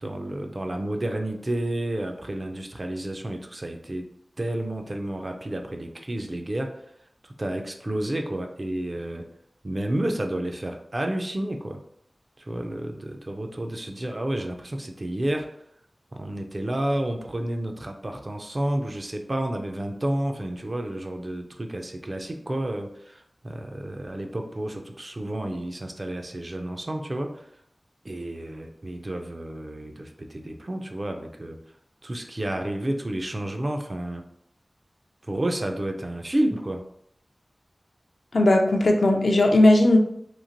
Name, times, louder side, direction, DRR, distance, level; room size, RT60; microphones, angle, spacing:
voice 1, 0.0-4.1 4.4-6.8 7.2-9.2 9.6-11.8 12.4-15.5 16.1-27.5 28.0-31.6 32.0-34.2 35.3-36.8, right 1 dB, 45° right, 4 dB, 0.4 m, -30 dB
voice 2, 38.3-40.0, left 1 dB, 80° left, 2 dB, 0.4 m, -17 dB
3.0 x 2.4 x 2.5 m, 0.72 s
wide cardioid pair, 55°, 0 cm